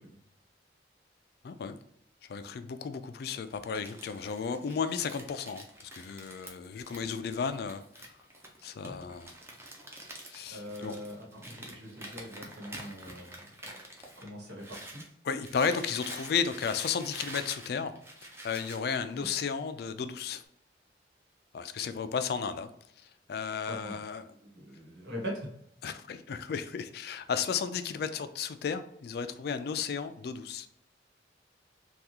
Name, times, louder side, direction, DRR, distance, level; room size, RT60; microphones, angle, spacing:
voice 1, 1.4-1.8 2.3-8.1 8.6-9.3 10.3-11.0 15.2-18.0 18.4-20.4 21.5-22.7 23.3-24.2 25.8-30.7, left 6 dB, 60° left, 11 dB, 0.3 m, -34 dB
Crumpling crinkling, 3.5-15.1 15.4-18.8, right 1 dB, 15° right, 0.6 m, -47 dB
voice 2, 10.5-13.4 14.2-15.0 19.1-19.3 23.7-24.0 24.5-25.5, equal, 80° right, -2 dB, 1.5 m, -42 dB
3.5 x 2.4 x 2.8 m, 0.75 s
head